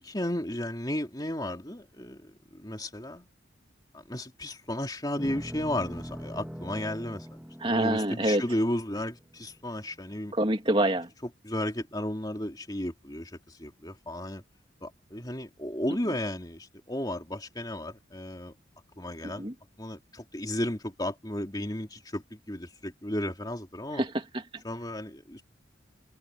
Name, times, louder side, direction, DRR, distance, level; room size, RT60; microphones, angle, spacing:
voice 1, 0.0-3.3 3.9-7.3 7.6-10.3 11.4-14.4 14.8-18.5 19.0-19.5 19.8-24.0 24.6-25.4, left 1 dB, 20° left, 3.1 m, -34 dB
sound 1, 5.2-9.6, equal, 5° right, 2.3 m, -42 dB
voice 2, 7.6-8.4 10.3-11.1 19.2-19.5 23.9-24.6, right 1 dB, 25° right, 2.9 m, -27 dB
head